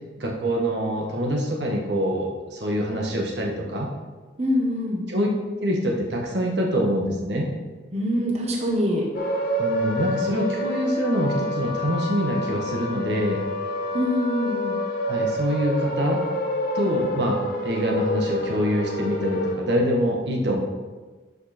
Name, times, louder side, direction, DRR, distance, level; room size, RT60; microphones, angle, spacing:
voice 1, 0.2-3.9 5.1-5.3 5.6-7.5 9.6-13.4 15.1-16.2 16.7-20.6, equal, 75° right, -1 dB, 1.7 m, -25 dB
voice 2, 4.4-5.0 7.9-9.0 13.9-14.8, equal, 40° right, -1 dB, 1.4 m, -24 dB
sound 1, 9.1-19.5, left 1 dB, 55° left, 1.7 m, -28 dB
11.5 x 5.5 x 4.4 m, 1.3 s
head